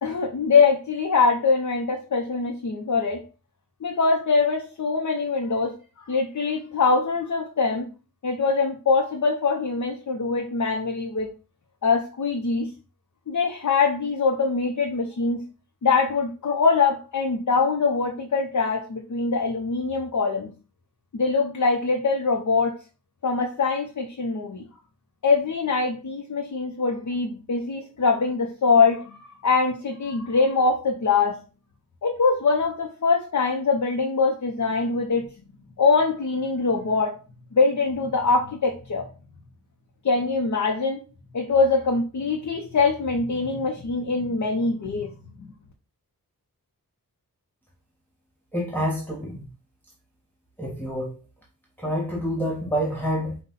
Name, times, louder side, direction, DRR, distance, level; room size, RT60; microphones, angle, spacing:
voice 1, 0.0-3.2 3.8-5.7 6.1-7.9 8.2-11.3 11.8-12.7 13.3-15.4 15.8-20.5 21.1-22.8 23.2-24.7 25.2-31.4 32.0-35.3 35.8-37.1 37.5-39.1 40.0-41.0 41.3-45.1 45.4-45.5, left 4 dB, 55° left, 0 dB, 0.7 m, -23 dB
voice 2, 48.5-49.4 50.6-51.2 51.8-53.4, equal, 5° left, -4 dB, 1.0 m, -27 dB
5.5 x 2.3 x 4.0 m, 0.35 s
wide cardioid pair, 100°, 35 cm